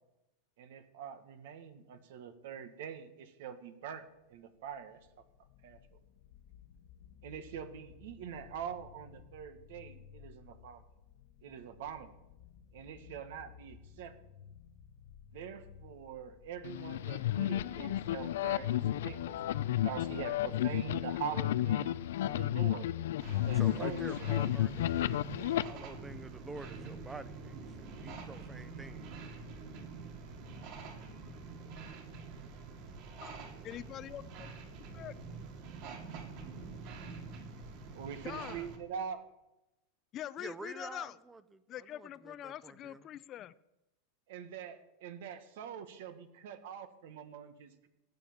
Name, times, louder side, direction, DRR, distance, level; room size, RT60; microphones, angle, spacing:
voice 1, 0.6-5.0 5.6-5.8 7.2-10.8 11.4-12.1 12.7-14.1 15.3-19.3 19.8-22.0 22.2-22.9 23.3-24.1 30.8-31.0 33.6-33.7 37.9-39.2 44.3-47.9, right 8 dB, 70° right, 9 dB, 1.6 m, -44 dB
sound 1, 4.2-20.5, left 8 dB, 55° left, 1.1 m, -57 dB
sound 2, 16.6-25.6, left 12 dB, 80° left, 0.5 m, -32 dB
sound 3, 23.2-38.8, right 4 dB, 50° right, 2.9 m, -46 dB
voice 2, 23.5-29.1 40.4-43.1, right 3 dB, 10° right, 14 dB, 0.9 m, -48 dB
voice 3, 33.2-34.5 34.9-35.1 38.2-38.7 40.1-41.1 41.7-43.5, left 12 dB, 30° left, 17 dB, 0.6 m, -44 dB
17.5 x 8.4 x 7.3 m, 0.94 s
supercardioid pair, 145°, 0 cm